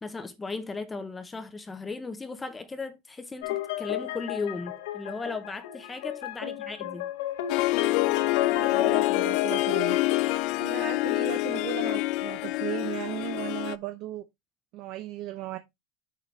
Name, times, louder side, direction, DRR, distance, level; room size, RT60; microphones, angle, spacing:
voice 1, 0.0-7.1, left 3 dB, 10° left, 0.6 m, -36 dB
sound 1, 3.4-10.4, left 13 dB, 85° left, 1.7 m, -33 dB
Harp, 7.5-13.8, left 20 dB, 45° left, 0.3 m, -26 dB
voice 2, 8.4-10.0 10.6-14.2 14.7-15.6, right 13 dB, 40° right, 0.6 m, -36 dB
7.4 x 6.7 x 3.2 m
cardioid pair, 180°, 0 cm